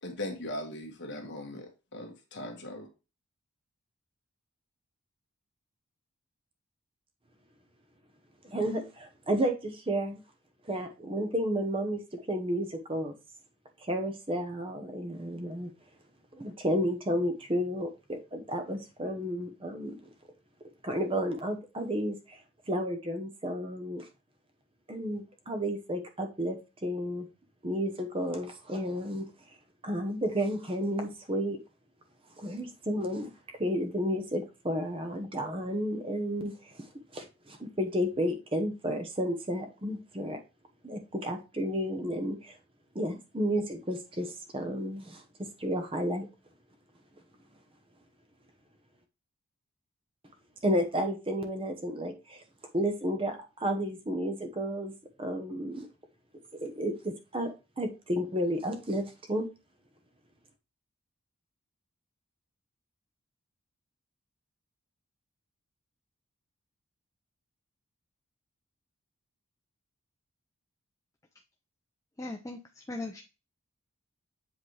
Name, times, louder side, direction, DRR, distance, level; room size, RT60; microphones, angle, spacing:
voice 1, 0.0-2.9, left 1 dB, 50° left, 1.7 m, -39 dB
voice 2, 8.4-10.2 10.6-13.1 13.8-15.7 16.3-19.9 20.8-22.4 22.7-24.1 24.9-27.3 27.6-29.3 29.8-31.6 32.4-33.3 33.6-40.4 40.8-42.6 42.9-46.3 50.6-52.4 52.7-54.9 55.2-55.9 56.6-59.5, equal, 25° right, 0.9 m, -32 dB
voice 3, 72.2-73.2, left 2 dB, 15° left, 0.5 m, -39 dB
7.7 x 4.0 x 3.2 m
head